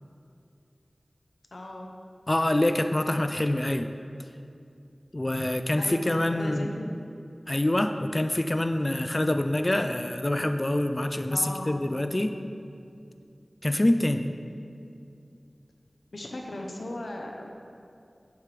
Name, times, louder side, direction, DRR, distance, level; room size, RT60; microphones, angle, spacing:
voice 1, 1.5-1.9 5.8-6.0 6.3-6.8 11.3-11.8 16.1-17.5, left 1 dB, 80° left, 1 dB, 0.7 m, -37 dB
voice 2, 2.3-3.9 5.1-6.7 7.5-12.4 13.6-14.4, left 1 dB, 35° left, 8 dB, 0.4 m, -26 dB
8.5 x 7.6 x 3.3 m, 2.5 s
wide cardioid pair, 45°, 0 cm